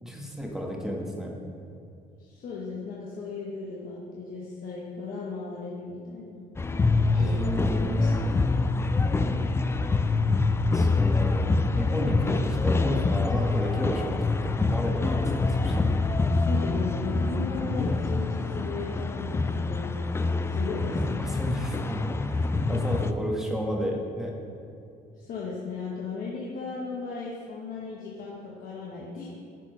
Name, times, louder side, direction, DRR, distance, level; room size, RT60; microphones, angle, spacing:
voice 1, 0.0-1.3 7.1-8.2 10.7-11.5 11.7-14.2 14.5-15.8 21.2-24.3, equal, 5° right, -1 dB, 1.3 m, -32 dB
voice 2, 2.2-6.4 7.2-7.4 7.8-8.1 16.3-20.0 20.4-21.6 22.7-23.0 25.1-29.3, left 4 dB, 55° left, -5 dB, 1.2 m, -36 dB
sound 1, 6.6-23.1, left 3 dB, 15° left, 0.3 m, -26 dB
8.9 x 4.4 x 5.4 m, 2.5 s
cardioid pair, 110°, 17 cm